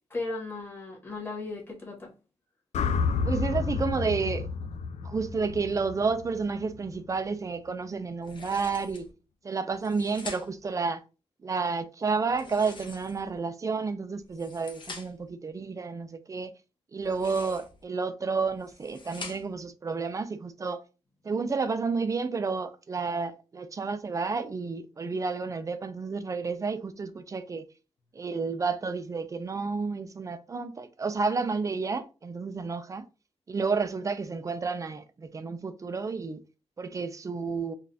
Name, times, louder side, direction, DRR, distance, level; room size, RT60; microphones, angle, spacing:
voice 1, 0.1-2.1, left 3 dB, 20° left, 1.5 m, -36 dB
sound 1, 2.7-7.0, left 5 dB, 90° left, 0.4 m, -30 dB
voice 2, 3.3-4.5 5.0-9.1 9.4-11.0 11.4-16.5 16.9-20.8 21.2-27.6 28.1-33.0 33.5-36.4 36.8-37.7, right 4 dB, 30° right, 0.4 m, -31 dB
sound 2, 8.2-9.1 9.7-10.7 12.3-13.4 14.2-15.3 17.0-17.8 18.4-19.7, left 4 dB, 45° left, 0.8 m, -45 dB
3.9 x 2.4 x 2.7 m
wide cardioid pair, 130°, 11 cm